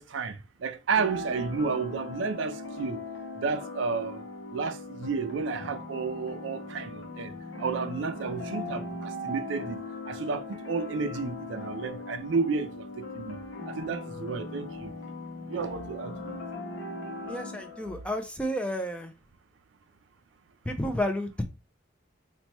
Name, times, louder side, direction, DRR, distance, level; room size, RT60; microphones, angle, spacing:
voice 1, 0.0-3.0 3.4-4.2 4.5-13.4 13.7-14.9 15.5-16.4, right 5 dB, 65° right, 0.4 m, -32 dB
sound 1, 0.9-18.2, left 2 dB, 80° left, 0.8 m, -39 dB
voice 2, 17.3-19.1 20.7-21.4, equal, 5° left, 0.4 m, -31 dB
2.9 x 2.2 x 4.1 m
head